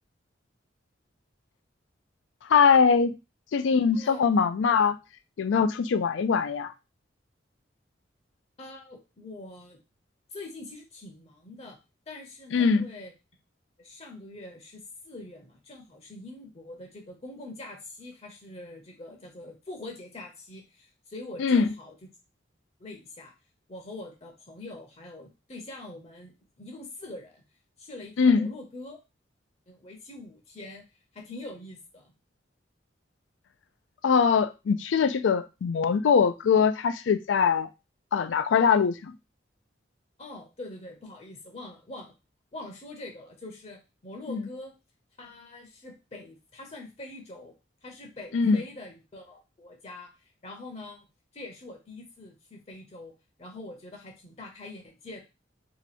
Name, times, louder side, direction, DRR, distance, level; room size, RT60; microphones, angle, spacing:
voice 1, 2.5-3.2 3.5-5.0 5.4-6.7 12.5-12.9 21.4-21.7 28.2-28.5 34.0-37.7 38.1-39.1 44.3-44.4 48.3-48.6, left 6 dB, 85° left, 12 dB, 0.4 m, -22 dB
voice 2, 8.6-9.8 10.3-11.8 12.1-13.1 13.8-21.9 22.8-23.3 23.7-26.3 26.6-27.4 27.8-29.0 29.7-30.8 31.1-32.1 40.2-42.1 42.5-44.7 45.2-47.5 47.8-50.1 50.4-51.0 51.3-53.1 53.4-55.2, left 2 dB, 35° left, 2 dB, 0.7 m, -44 dB
2.9 x 2.3 x 4.1 m, 0.27 s
head